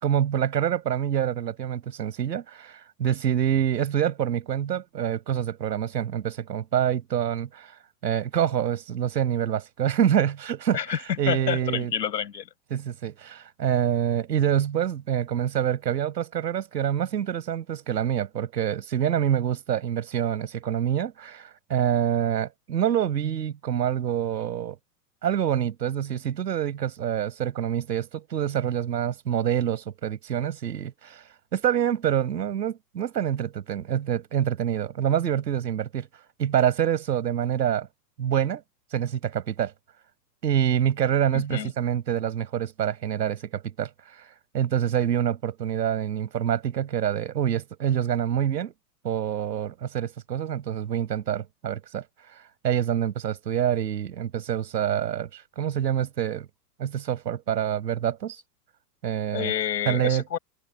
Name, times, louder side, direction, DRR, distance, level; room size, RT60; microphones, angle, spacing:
voice 1, 0.0-7.7 8.0-11.9 12.7-24.8 25.2-31.2 31.5-36.1 36.4-37.9 38.2-38.6 38.9-39.7 40.4-43.9 44.5-48.7 49.0-52.0 52.6-56.5 56.8-58.4 59.0-59.5 59.9-60.2, right 9 dB, 80° right, 5.7 m, -26 dB
voice 2, 10.7-12.5 41.3-41.7 59.3-60.4, left 9 dB, 80° left, 6.2 m, -29 dB
hypercardioid pair, 100°, 49 cm